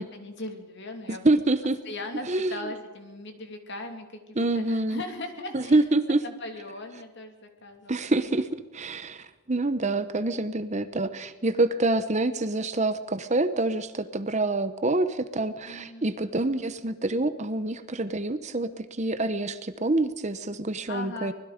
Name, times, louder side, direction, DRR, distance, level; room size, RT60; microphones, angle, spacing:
voice 1, 0.0-1.2 1.8-5.8 6.2-8.1 15.7-16.1 20.9-21.3, left 2 dB, 50° left, 4 dB, 3.0 m, -39 dB
voice 2, 1.1-1.8 2.3-2.5 4.4-5.0 5.5-6.2 7.9-21.3, right 2 dB, 30° right, 12 dB, 0.9 m, -26 dB
25.0 x 20.5 x 5.2 m, 1.2 s
head